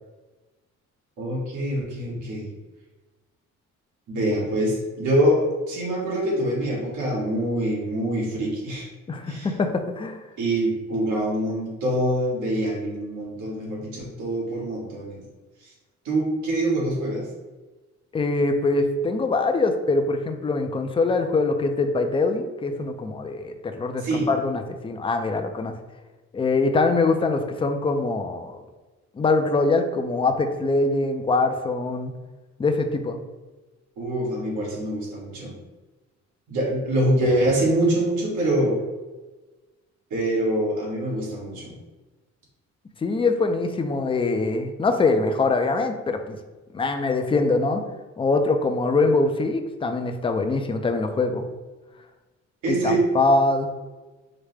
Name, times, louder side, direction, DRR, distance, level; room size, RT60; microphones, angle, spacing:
voice 1, 1.2-2.5 4.1-8.9 9.3-9.5 10.4-15.2 16.0-17.3 24.0-24.3 34.0-35.5 36.5-38.8 40.1-41.7 52.6-53.0, right 1 dB, 80° right, -3 dB, 1.4 m, -25 dB
voice 2, 9.1-10.2 18.1-25.8 26.3-28.6 29.1-32.1 32.6-33.2 43.0-46.4 46.7-47.9 48.2-51.5 52.7-53.7, left 3 dB, 20° left, 6 dB, 0.4 m, -23 dB
4.9 x 2.1 x 3.2 m, 1.2 s
cardioid pair, 90°, 30 cm